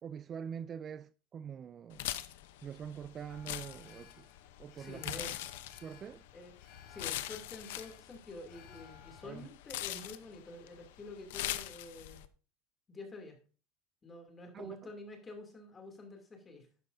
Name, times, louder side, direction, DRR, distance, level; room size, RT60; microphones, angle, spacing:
voice 1, 0.0-2.1 2.6-4.3 4.6-5.2 5.8-6.2 9.2-9.5 14.5-14.8, right 8 dB, 30° right, 0.3 m, -44 dB
sound 1, 1.9-12.3, left 14 dB, 85° left, 0.8 m, -42 dB
Alarm, 3.3-9.4, left 7 dB, 65° left, 3.8 m, -57 dB
voice 2, 4.8-5.3 6.3-6.5 6.9-12.2 12.9-13.4 14.0-16.7, left 2 dB, 20° left, 2.7 m, -48 dB
11.5 x 9.6 x 2.7 m
supercardioid pair, 140°, 0 cm